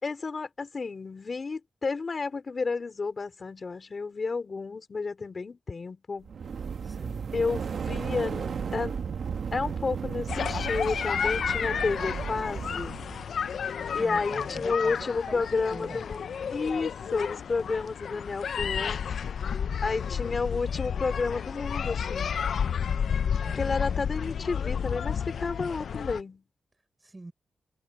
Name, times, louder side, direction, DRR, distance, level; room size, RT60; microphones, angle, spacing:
voice 1, 0.0-6.3 7.3-9.0 9.5-13.0 13.9-19.0 19.8-22.3 23.5-26.4, left 4 dB, 35° left, 3.7 m, -31 dB
sound 1, 6.2-13.2, right 6 dB, 60° right, 1.4 m, -34 dB
voice 2, 6.8-7.5 13.9-16.0 19.6-20.1 23.4-23.8 27.0-27.3, right 2 dB, 20° right, 5.4 m, -44 dB
sound 2, 10.3-26.2, left 7 dB, 65° left, 0.6 m, -31 dB
wide cardioid pair, 145°, 0 cm